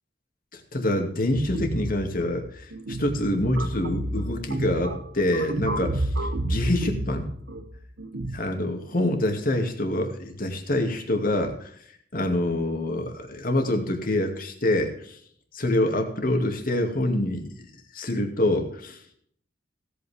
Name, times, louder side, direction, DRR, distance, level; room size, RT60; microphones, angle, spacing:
voice 1, 0.5-6.1 6.4-7.2 8.3-11.7 12.1-15.2 15.5-17.5 17.9-19.1, left 1 dB, 50° left, 4 dB, 2.3 m, -26 dB
sound 1, 1.3-8.4, right 1 dB, 85° right, 1.1 m, -31 dB
17.0 x 8.6 x 3.6 m, 0.62 s
head